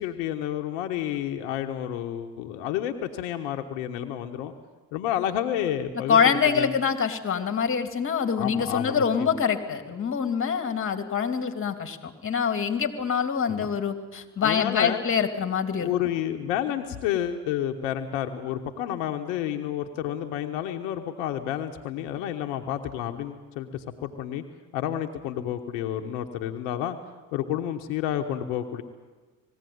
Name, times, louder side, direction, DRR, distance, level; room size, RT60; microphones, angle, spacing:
voice 1, 0.0-4.5 4.9-6.8 8.4-9.4 13.5-13.7 14.4-15.0 15.8-24.4 24.7-27.0 27.3-28.8, left 11 dB, 80° left, 5 dB, 1.2 m, -30 dB
voice 2, 6.1-15.9, left 6 dB, 35° left, 8 dB, 2.6 m, -25 dB
20.0 x 16.0 x 9.4 m, 1.3 s
hypercardioid pair, 70°, 37 cm